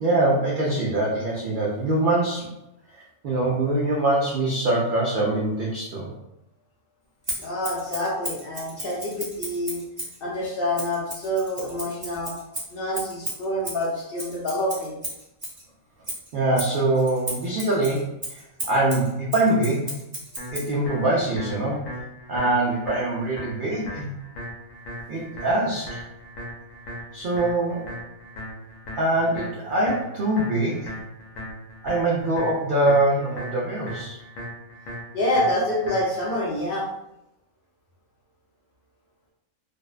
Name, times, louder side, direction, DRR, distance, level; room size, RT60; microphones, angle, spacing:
voice 1, 0.0-2.5 2.9-6.1 16.3-20.0 20.5-21.8 22.3-24.1 25.1-26.0 27.1-27.8 28.9-31.0 31.8-34.2, right 2 dB, 80° right, -5 dB, 0.4 m, -23 dB
Scissors, 7.2-10.2 10.7-15.6 16.0-20.7, right 1 dB, 25° right, 0.6 m, -35 dB
voice 2, 7.4-9.8 10.2-12.3 12.7-15.0 35.1-36.8, left 1 dB, 55° left, -6 dB, 0.7 m, -27 dB
sound 1, 20.4-36.4, equal, 75° left, 1.0 m, -38 dB
2.5 x 2.1 x 2.3 m, 0.87 s
omnidirectional pair, 1.4 m